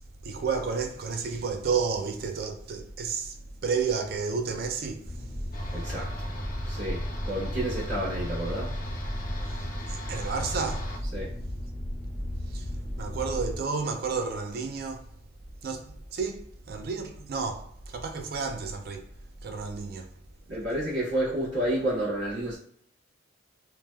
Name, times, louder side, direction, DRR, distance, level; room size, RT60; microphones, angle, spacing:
voice 1, 0.2-3.3 3.6-5.2 9.9-10.9 12.5-12.7 13.0-15.0 15.6-19.0 19.4-20.1, right 5 dB, 50° right, 0.4 m, -31 dB
sound 1, 5.0-13.6, equal, 25° right, 1.1 m, -35 dB
sound 2, 5.5-11.0, equal, 45° left, 0.4 m, -38 dB
voice 2, 5.7-6.1 6.7-8.7 11.1-11.3 20.5-22.6, right 1 dB, 65° right, 1.4 m, -30 dB
3.1 x 2.1 x 2.2 m
head